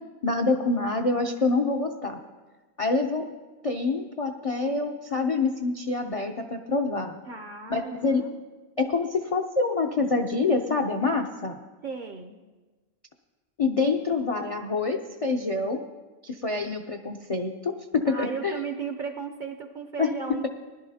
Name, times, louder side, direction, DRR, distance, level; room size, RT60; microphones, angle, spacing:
voice 1, 0.2-2.2 2.8-3.3 3.6-7.2 7.7-8.2 8.8-11.6 13.6-15.9 16.2-18.6 20.0-20.1, left 3 dB, 50° left, 4 dB, 0.4 m, -26 dB
voice 2, 7.3-8.3 11.8-12.4 18.0-20.5, right 5 dB, 50° right, 5 dB, 0.6 m, -35 dB
20.0 x 11.5 x 2.8 m, 1.3 s
omnidirectional pair, 1.4 m